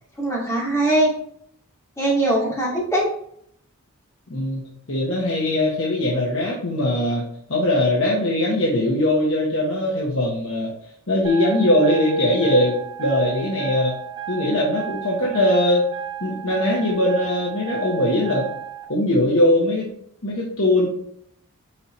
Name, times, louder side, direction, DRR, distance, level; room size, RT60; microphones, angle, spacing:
voice 1, 0.2-1.1 2.0-3.1, right 1 dB, 15° left, -6 dB, 2.4 m, -21 dB
voice 2, 4.3-7.2 7.5-10.7 11.1-13.9 14.3-15.8 16.2-18.5 18.9-19.9 20.2-20.9, left 1 dB, 65° left, -5 dB, 1.3 m, -21 dB
sound 1, 11.2-18.8, right 11 dB, 20° right, 1.1 m, -34 dB
6.4 x 4.6 x 3.2 m, 0.68 s
head